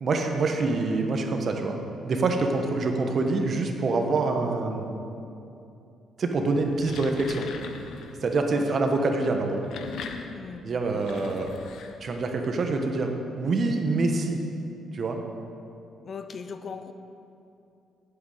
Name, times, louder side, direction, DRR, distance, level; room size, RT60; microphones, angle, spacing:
voice 1, 0.0-4.8 6.2-7.5 8.2-9.6 10.6-11.5 12.0-14.4 14.9-15.2, right 3 dB, 50° right, 3 dB, 1.3 m, -26 dB
sound 1, 6.5-8.2 9.4-12.5, left 5 dB, 75° left, 0.8 m, -40 dB
voice 2, 10.3-11.1 16.0-16.9, left 5 dB, 45° left, 9 dB, 0.6 m, -39 dB
8.3 x 8.2 x 8.0 m, 2.7 s
cardioid pair, 90°, 0 cm